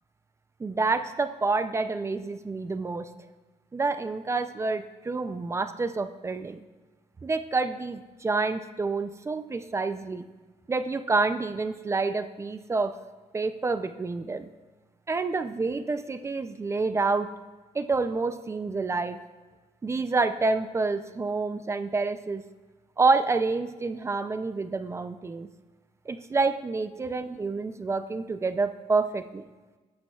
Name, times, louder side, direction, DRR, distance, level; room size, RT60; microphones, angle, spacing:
voice 1, 0.6-3.1 3.7-6.6 7.2-10.2 10.7-12.9 13.3-14.5 15.1-17.3 17.7-19.2 19.8-22.4 23.0-25.5 26.1-29.5, right 3 dB, 20° right, 10 dB, 0.4 m, -28 dB
16.5 x 8.8 x 2.3 m, 1.3 s
wide cardioid pair, 155°, 13 cm